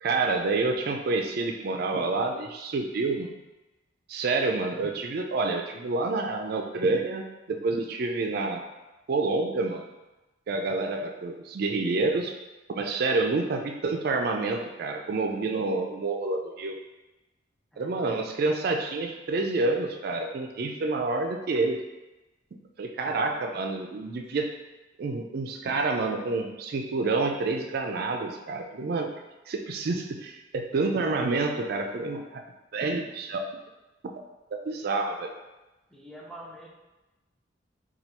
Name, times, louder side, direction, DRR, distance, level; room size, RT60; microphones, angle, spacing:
voice 1, 0.0-3.3 4.1-8.7 9.1-9.9 10.5-12.3 12.7-16.8 17.8-21.8 22.8-24.5 25.0-29.1 29.5-32.4 32.7-33.5 34.7-35.3, right 3 dB, 55° right, 3 dB, 0.4 m, -28 dB
voice 2, 17.7-18.2 23.0-23.6 35.9-36.7, right 1 dB, 5° left, -3 dB, 0.5 m, -45 dB
4.4 x 2.3 x 2.8 m, 1.1 s
head